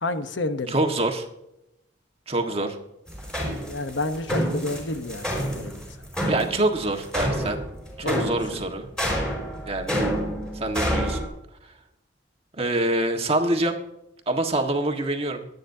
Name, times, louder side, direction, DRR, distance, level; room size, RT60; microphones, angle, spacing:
voice 1, 0.0-0.8 3.6-5.3 5.5-5.8 8.0-8.6, left 2 dB, 85° left, 9 dB, 1.0 m, -30 dB
voice 2, 0.7-1.3 2.3-2.8 6.3-7.6 8.0-8.9 9.6-10.0 10.5-11.3 12.6-13.8 14.3-15.5, right 2 dB, 30° right, 4 dB, 1.5 m, -25 dB
sound 1, 3.1-11.3, equal, 5° left, 5.0 m, -28 dB
22.5 x 9.4 x 2.8 m, 0.85 s
head